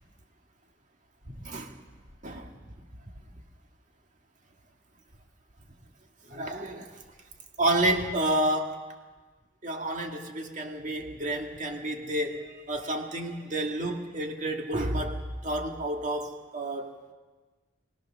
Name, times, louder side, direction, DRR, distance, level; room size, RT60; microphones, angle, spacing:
voice 1, 1.3-1.7 2.2-2.5 6.3-6.9 7.6-8.8 9.6-16.9, right 1 dB, 40° right, 3 dB, 2.0 m, -30 dB
24.5 x 17.5 x 6.4 m, 1.4 s
head